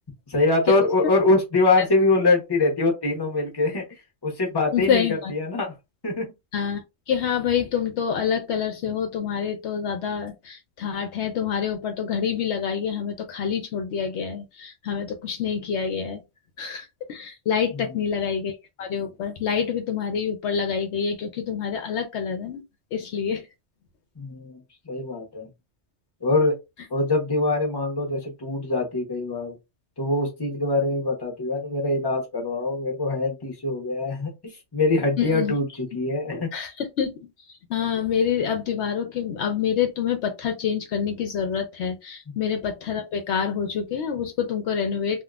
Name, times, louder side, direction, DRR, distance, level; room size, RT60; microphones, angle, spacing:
voice 1, 0.3-3.8 4.2-5.7 6.0-6.3 17.7-18.0 24.2-24.6 24.8-25.5 26.2-26.5 26.9-29.5 30.0-36.5 42.3-42.4, left 2 dB, 20° left, 0 dB, 1.0 m, -24 dB
voice 2, 4.7-5.3 6.5-6.8 7.1-16.2 16.6-22.6 22.9-23.4 35.2-35.6 36.5-37.1 37.7-45.2, left 7 dB, 70° left, 6 dB, 0.8 m, -27 dB
3.6 x 2.3 x 2.3 m, 0.23 s
omnidirectional pair, 1.2 m